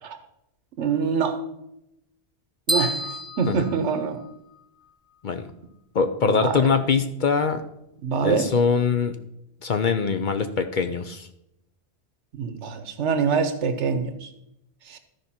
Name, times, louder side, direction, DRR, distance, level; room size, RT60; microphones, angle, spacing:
voice 1, 0.8-1.4 2.7-4.2 6.2-6.7 8.0-8.5 12.3-14.3 14.9-15.0, right 6 dB, 80° right, 9 dB, 1.2 m, -25 dB
sound 1, 2.7-4.6, equal, 5° right, 0.6 m, -29 dB
voice 2, 5.9-7.6 8.2-9.2 9.6-11.3, left 5 dB, 55° left, 8 dB, 0.6 m, -23 dB
13.5 x 5.1 x 4.2 m, 0.83 s
omnidirectional pair, 1.2 m